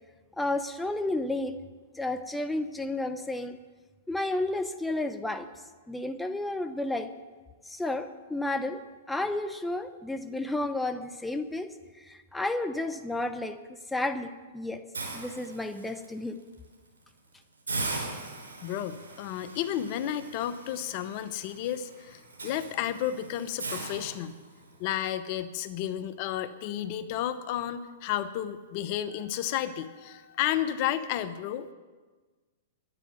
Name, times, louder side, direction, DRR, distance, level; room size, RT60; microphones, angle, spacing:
voice 1, 0.4-1.6 2.0-3.6 4.1-5.5 5.9-7.1 7.7-8.8 9.1-11.7 12.1-13.6 13.9-14.8 15.1-16.4, left 2 dB, 5° left, 7 dB, 0.8 m, -31 dB
Hiss, 14.9-16.1 16.5-16.7 17.1-17.2 17.7-24.7, right 3 dB, 85° right, 5.4 m, -39 dB
voice 2, 18.1-24.4 24.8-31.7, left 11 dB, 45° left, 12 dB, 0.9 m, -32 dB
11.5 x 10.0 x 9.3 m, 1.3 s
hypercardioid pair, 115°, 0 cm